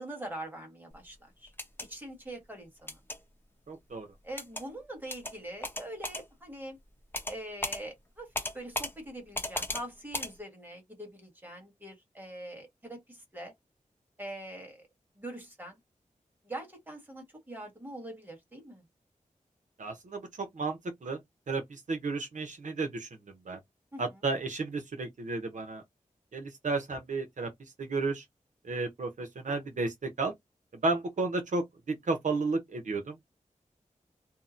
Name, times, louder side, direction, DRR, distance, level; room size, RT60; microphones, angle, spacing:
voice 1, 0.0-1.5 1.9-3.0 4.2-6.8 7.3-13.5 14.2-14.9 15.2-15.8 16.4-18.8 23.9-24.0, right 1 dB, 15° right, 1.4 m, -43 dB
sound 1, 1.5-1.9 2.9-3.2 4.4-4.6 5.1-5.3 5.6-6.2 7.1-7.4 7.6-7.8 8.3-8.9 9.3-9.8 10.1-10.3, left 1 dB, 15° left, 0.8 m, -35 dB
voice 2, 3.7-4.1 19.8-21.2 21.5-23.1 23.5-23.6 24.0-25.8 26.3-27.5 27.8-28.2 28.6-30.3 30.8-33.2, right 3 dB, 65° right, 0.7 m, -32 dB
2.8 x 2.1 x 3.8 m
wide cardioid pair, 95°, 13 cm